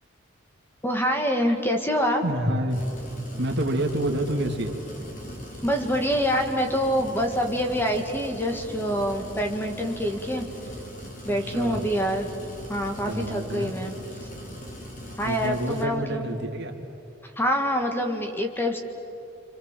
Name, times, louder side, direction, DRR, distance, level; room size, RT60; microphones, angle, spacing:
voice 1, 0.8-2.2 5.6-10.5 11.2-12.3 12.7-13.9 15.2-16.4 17.4-18.8, equal, 10° left, 4 dB, 1.9 m, -26 dB
voice 2, 2.2-2.8 3.4-4.8 11.3-11.9 13.1-13.7 15.2-16.7, right 1 dB, 55° right, 3 dB, 2.7 m, -28 dB
sound 1, 2.7-15.8, equal, 40° left, 3.7 m, -40 dB
28.5 x 26.5 x 7.7 m, 2.8 s
head